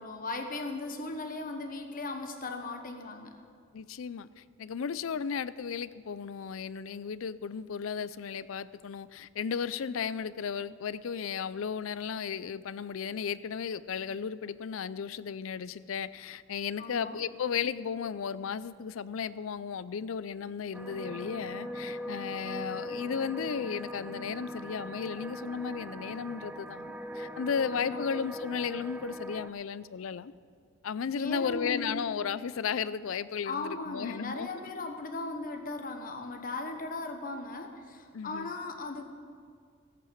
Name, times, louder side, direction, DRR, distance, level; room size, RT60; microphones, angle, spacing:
voice 1, 0.0-3.3 16.8-17.2 27.8-28.2 31.1-32.1 33.5-39.0, left 3 dB, 45° left, 5 dB, 1.1 m, -37 dB
voice 2, 3.7-30.3 30.8-34.5 38.1-38.5, left 6 dB, 80° left, 17 dB, 0.4 m, -35 dB
sound 1, 20.7-29.5, equal, 5° right, 0.4 m, -40 dB
15.0 x 8.5 x 6.5 m, 2.1 s
head